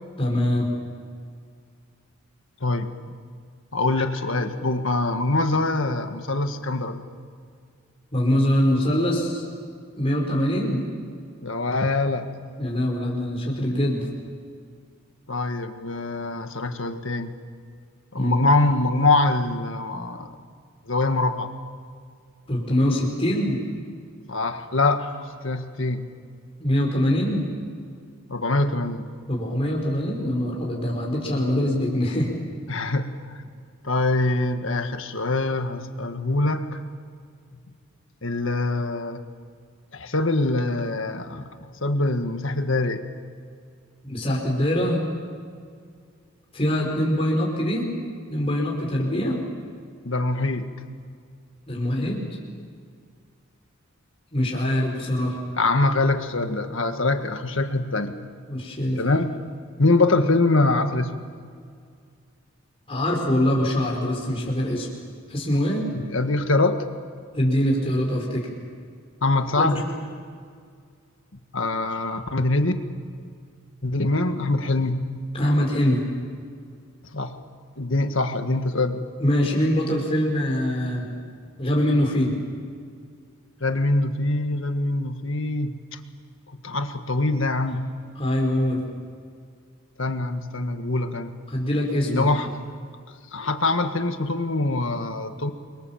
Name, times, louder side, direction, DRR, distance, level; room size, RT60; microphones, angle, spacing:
voice 1, 0.2-0.7 8.1-9.4 9.9-10.8 12.6-14.0 18.1-18.3 22.5-23.6 26.6-27.5 29.3-32.3 44.0-45.0 46.5-47.9 48.3-49.4 51.7-52.2 54.3-55.4 58.5-59.0 62.9-64.9 65.3-65.9 67.3-68.5 69.6-69.7 75.3-76.0 79.2-81.0 81.6-82.3 88.2-88.8 91.5-92.3, equal, 25° left, -2 dB, 4.8 m, -23 dB
voice 2, 3.7-7.0 11.4-12.3 15.3-17.3 18.1-20.4 20.9-21.5 24.3-25.1 25.4-26.0 28.3-29.1 32.7-33.1 33.8-36.8 38.2-39.2 39.9-41.5 41.8-43.0 50.0-50.8 55.6-58.2 58.9-59.3 59.8-61.2 65.9-66.8 69.2-69.8 71.5-72.8 73.8-75.1 77.1-77.3 77.8-79.0 83.6-86.0 86.6-88.0 90.0-91.3 92.1-92.5 93.3-95.5, left 2 dB, 60° left, 7 dB, 1.8 m, -24 dB
29.5 x 24.0 x 7.3 m, 2.1 s
head